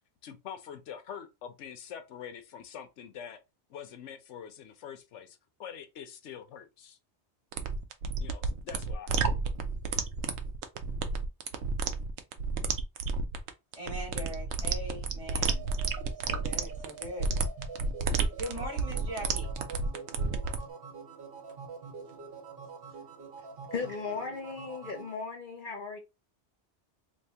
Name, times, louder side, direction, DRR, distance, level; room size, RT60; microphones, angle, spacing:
voice 1, 0.2-3.4 3.7-7.0 8.2-9.3, left 8 dB, 85° left, 1.0 m, -45 dB
sound 1, 7.5-20.6, right 4 dB, 75° right, 0.9 m, -31 dB
voice 2, 13.7-15.7 16.2-17.3 18.4-19.5, equal, 30° right, 1.5 m, -40 dB
sound 2, 15.3-25.1, right 5 dB, 55° right, 1.1 m, -46 dB
voice 3, 23.7-26.0, left 5 dB, 55° left, 0.7 m, -36 dB
3.2 x 2.8 x 3.3 m
omnidirectional pair, 1.2 m